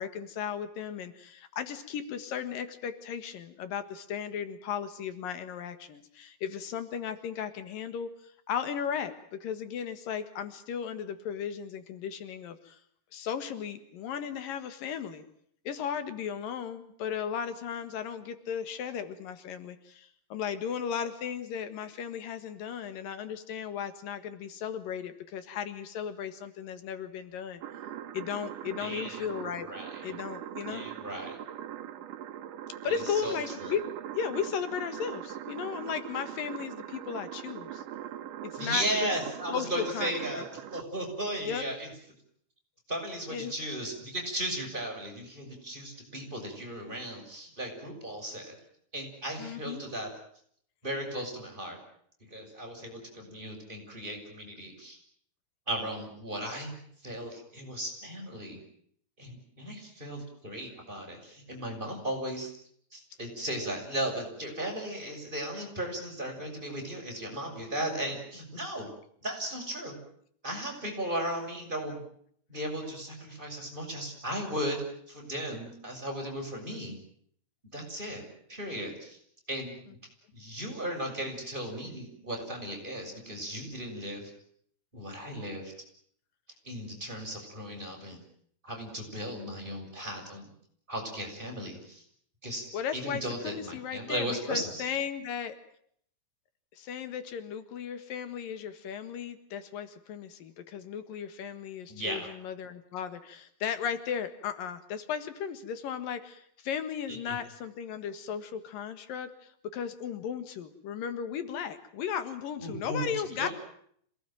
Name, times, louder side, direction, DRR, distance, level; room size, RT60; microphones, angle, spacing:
voice 1, 0.0-12.8 13.1-15.2 15.6-27.6 28.1-29.7 30.0-30.9 32.8-33.8 34.1-37.8 38.4-39.1 39.5-40.4 41.5-41.6 43.3-43.5 49.4-49.8 92.7-95.5 96.7-113.5, left 8 dB, 80° left, 10 dB, 3.3 m, -36 dB
sound 1, 27.6-40.8, right 11 dB, 75° right, 2.7 m, -41 dB
voice 2, 28.8-29.3 29.7-30.1 30.7-31.4 33.1-33.8 38.6-41.9 42.9-48.5 48.9-50.1 50.8-51.8 52.2-55.0 55.7-56.7 57.0-58.6 59.2-62.5 62.9-68.9 69.2-70.0 70.4-72.0 72.5-74.8 75.1-77.0 77.7-79.2 79.5-79.8 80.3-84.3 84.9-85.7 86.7-88.2 88.6-90.5 90.9-92.0 92.4-92.7 92.9-94.7 101.9-102.3 107.1-107.4 112.6-113.1 113.4-113.5, right 1 dB, 15° right, 1 dB, 7.0 m, -36 dB
27.0 x 19.0 x 9.2 m, 0.66 s
omnidirectional pair, 3.9 m